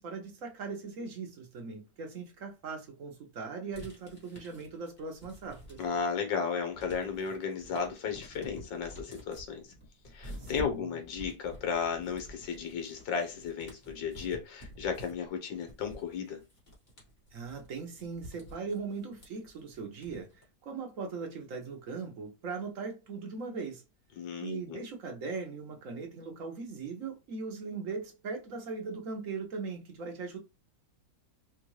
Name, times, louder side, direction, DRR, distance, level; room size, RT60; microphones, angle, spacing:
voice 1, 0.0-5.8 10.4-10.9 17.3-23.8 24.4-30.4, right 4 dB, 55° right, 0.9 m, -39 dB
sound 1, 3.7-6.2 6.5-20.4, equal, 25° left, 1.5 m, -49 dB
voice 2, 5.8-9.6 10.1-16.4 24.2-24.8, left 6 dB, 75° left, 1.6 m, -34 dB
4.4 x 2.4 x 3.1 m
omnidirectional pair, 2.1 m